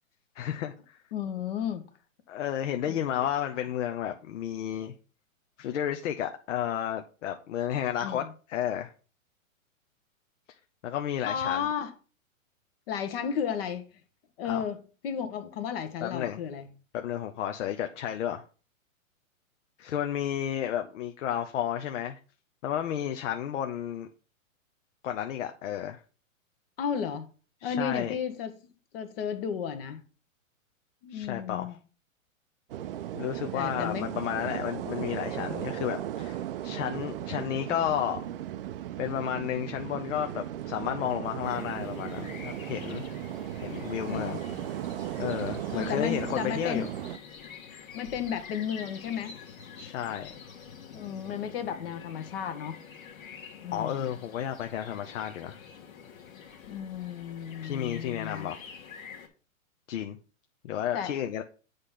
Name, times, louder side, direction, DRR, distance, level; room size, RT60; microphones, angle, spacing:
voice 1, 0.4-1.0 2.3-4.9 5.6-8.2 8.5-8.9 10.8-11.7 14.4-14.6 16.0-16.4 16.9-18.4 19.8-22.2 22.6-24.1 25.0-26.0 27.6-28.2 31.1-31.8 33.1-38.2 39.0-43.1 43.6-44.4 45.2-46.9 49.8-50.4 53.7-55.6 57.6-58.6 59.9-60.2 60.6-61.4, left 10 dB, 60° left, 0.8 m, -32 dB
voice 2, 1.1-1.8 2.9-3.0 8.0-8.3 11.2-11.9 12.9-14.0 14.4-14.8 15.0-16.7 26.8-27.3 27.6-28.6 28.9-30.0 31.0-31.8 33.5-34.1 44.1-44.4 45.7-46.9 47.9-49.4 50.9-52.8 53.6-54.2 56.7-58.5 60.9-61.1, left 8 dB, 45° left, 1.1 m, -33 dB
sound 1, 32.7-47.2, right 12 dB, 45° right, 0.5 m, -36 dB
sound 2, 41.4-59.3, left 6 dB, 75° left, 1.8 m, -47 dB
8.1 x 3.5 x 5.6 m
hypercardioid pair, 150°, 41 cm